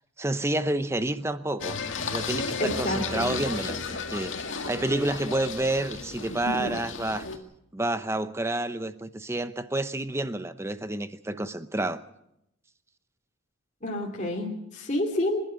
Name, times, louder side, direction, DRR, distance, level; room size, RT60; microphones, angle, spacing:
voice 1, 0.2-1.8 2.1-4.3 4.7-7.3 7.7-12.0, right 1 dB, 15° right, 0.7 m, -29 dB
Singing, 1.6-7.4, left 4 dB, 70° left, 2.0 m, -33 dB
voice 2, 2.6-3.3 13.8-15.4, left 1 dB, 35° left, 3.1 m, -29 dB
26.0 x 11.5 x 9.3 m
head